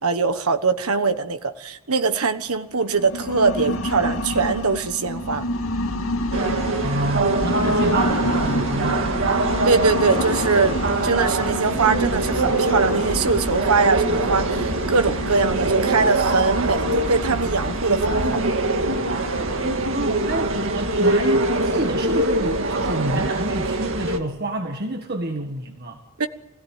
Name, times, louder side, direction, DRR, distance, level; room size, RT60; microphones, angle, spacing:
voice 1, 0.0-5.4 9.6-18.4 26.2-26.3, right 4 dB, 90° right, 8 dB, 1.3 m, -22 dB
sound 1, 2.8-21.6, left 1 dB, 70° left, 2.5 m, -30 dB
sound 2, 6.3-24.2, right 2 dB, 65° right, 2.1 m, -23 dB
voice 2, 6.8-9.3 19.9-26.0, right 1 dB, 45° right, 4 dB, 1.8 m, -28 dB
25.5 x 17.0 x 9.2 m, 0.95 s
head